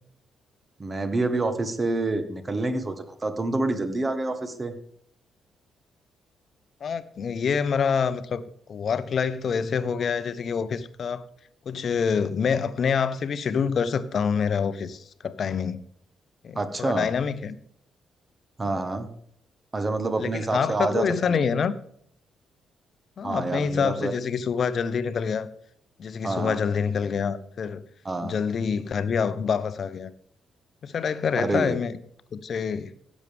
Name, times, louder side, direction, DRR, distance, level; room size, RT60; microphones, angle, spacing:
voice 1, 0.8-4.7 16.5-17.1 18.6-19.1 19.7-21.4 23.2-24.2 26.2-26.6 28.0-28.4 31.3-31.8, right 2 dB, 30° right, 1.4 m, -27 dB
voice 2, 6.8-8.4 8.7-11.3 11.6-15.8 16.4-17.6 18.6-18.7 20.2-21.7 23.2-25.5 26.0-27.8 28.2-30.1 30.8-32.0 32.3-32.9, left 6 dB, 55° left, 0.8 m, -26 dB
16.5 x 7.4 x 3.5 m
hypercardioid pair, 45°, 0 cm